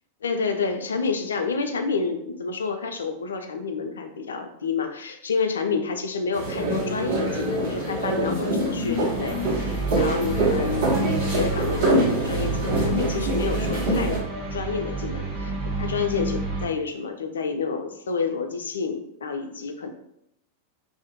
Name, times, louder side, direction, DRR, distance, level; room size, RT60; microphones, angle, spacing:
voice 1, 0.2-14.2 14.5-15.5 15.8-19.9, left 5 dB, 70° left, 6 dB, 0.3 m, -29 dB
sound 1, 6.3-14.2, right 1 dB, 60° right, 1.2 m, -25 dB
sound 2, 9.1-16.7, right 3 dB, 45° right, 0.9 m, -29 dB
2.5 x 2.0 x 2.9 m, 0.78 s
figure-of-eight pair, 90°, 0 cm